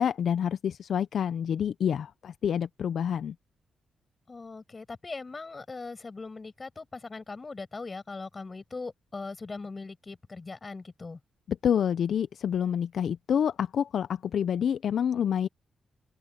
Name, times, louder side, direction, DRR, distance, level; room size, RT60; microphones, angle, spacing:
voice 1, 0.0-3.3 11.6-15.5, left 8 dB, 75° left, 0.5 m, -27 dB
voice 2, 4.3-11.2, left 3 dB, 35° left, 6.4 m, -40 dB
open air
cardioid pair, 60°, 0 cm